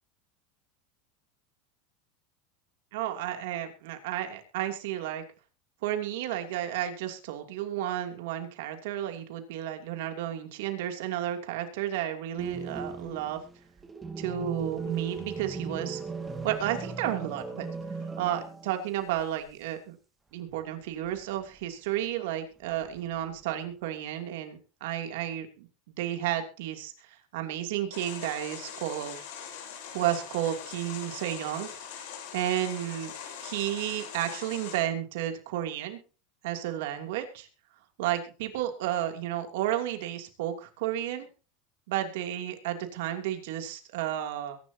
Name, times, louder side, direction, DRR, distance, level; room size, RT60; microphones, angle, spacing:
voice 1, 2.9-5.2 5.8-13.4 14.2-16.0 16.4-17.7 18.2-20.0 20.3-29.2 29.9-32.0 32.3-33.1 33.4-36.0 36.4-37.5 38.0-41.3 41.9-44.6, right 12 dB, 75° right, 5 dB, 2.9 m, -32 dB
sound 1, 12.4-18.9 19.2-19.3 21.0-21.6 22.7-23.4, right 4 dB, 15° right, 2.1 m, -38 dB
sound 2, 27.9-34.8, left 8 dB, 75° left, 5.9 m, -42 dB
22.5 x 11.5 x 2.9 m, 0.34 s
supercardioid pair, 130°, 0 cm